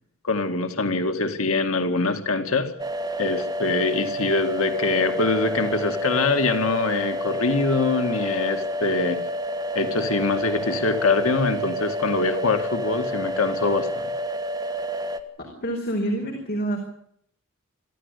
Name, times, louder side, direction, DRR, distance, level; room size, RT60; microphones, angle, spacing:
voice 1, 0.2-2.7 3.2-9.2 9.7-14.1, left 3 dB, 85° left, 6 dB, 2.4 m, -24 dB
sound 1, 2.8-15.2, equal, 20° right, 2.0 m, -29 dB
voice 2, 15.4-16.8, right 1 dB, 50° left, 2 dB, 4.7 m, -27 dB
26.0 x 14.5 x 8.5 m, 0.70 s
head